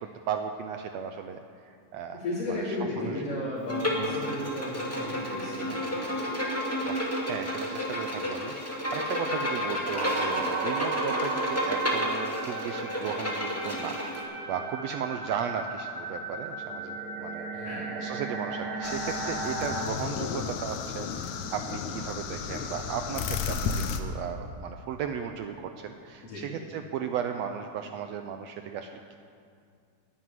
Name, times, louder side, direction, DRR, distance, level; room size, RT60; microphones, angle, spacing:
voice 1, 0.0-2.2 2.5-3.2 5.7-5.8 6.8-7.0 7.2-17.5 18.0-29.2, right 7 dB, 75° right, 6 dB, 1.6 m, -36 dB
voice 2, 2.1-6.0 17.5-17.9 26.2-26.4, left 1 dB, 60° left, -10 dB, 3.8 m, -34 dB
Bowed string instrument, 3.7-14.2, equal, 5° left, 1.8 m, -31 dB
sound 1, 9.9-19.8, right 3 dB, 40° right, 1.3 m, -35 dB
sound 2, 18.8-24.0, left 6 dB, 80° left, 2.2 m, -33 dB
11.0 x 10.0 x 9.5 m, 2.3 s
omnidirectional pair, 3.3 m